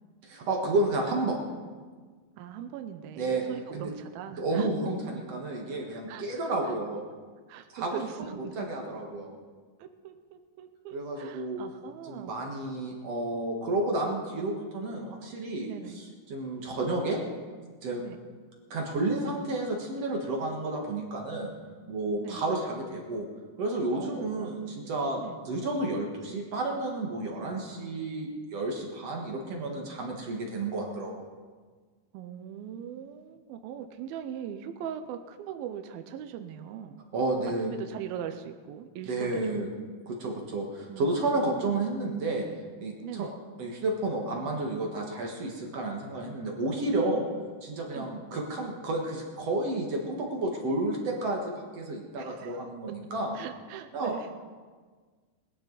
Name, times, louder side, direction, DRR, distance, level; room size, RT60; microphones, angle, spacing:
voice 1, 0.2-1.4 3.2-3.4 3.7-3.9 4.4-7.0 7.7-8.0 8.6-9.3 10.9-11.6 12.1-17.2 17.8-18.0 18.7-21.5 21.9-23.3 23.6-31.1 37.1-37.7 39.0-39.7 40.1-42.5 42.8-43.3 43.6-47.2 47.6-53.3 53.9-54.1, right 2 dB, 55° right, 0 dB, 2.0 m, -31 dB
voice 2, 2.4-4.7 5.8-6.8 7.5-8.7 9.8-12.3 14.4-14.5 15.7-16.0 18.0-18.2 22.2-22.4 23.9-24.5 25.2-25.4 32.1-37.0 37.7-39.6 40.9-41.8 43.0-43.4 47.9-48.1 52.2-52.7 53.3-54.3, right 9 dB, 80° right, 7 dB, 2.3 m, -41 dB
20.0 x 12.5 x 4.0 m, 1.5 s
omnidirectional pair, 4.7 m